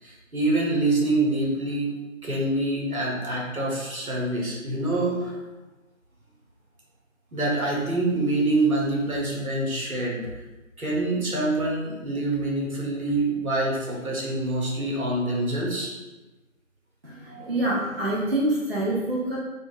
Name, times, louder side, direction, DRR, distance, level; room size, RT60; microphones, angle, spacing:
voice 1, 0.0-1.9 2.2-5.4 7.3-10.3 10.8-15.9, right 2 dB, 90° right, -3 dB, 1.1 m, -26 dB
voice 2, 17.0-19.4, right 1 dB, 45° right, -5 dB, 0.5 m, -26 dB
3.6 x 2.4 x 2.5 m, 1.1 s
figure-of-eight pair, 175°, 41 cm